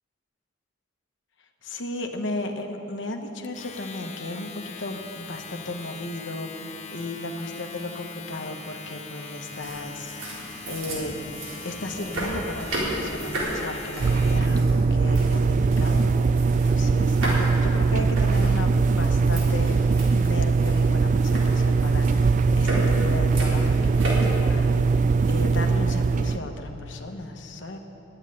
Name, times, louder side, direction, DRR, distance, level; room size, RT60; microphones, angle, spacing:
voice 1, 1.6-19.8 20.1-27.8, left 1 dB, 65° left, 4 dB, 1.1 m, -35 dB
Domestic sounds home sounds, 3.4-14.6, left 4 dB, 35° left, 0.8 m, -41 dB
sound 1, 9.5-25.3, right 1 dB, 80° right, 3.9 m, -35 dB
sound 2, 14.0-26.4, right 4 dB, 40° right, 0.3 m, -21 dB
10.5 x 8.9 x 9.9 m, 2.9 s
head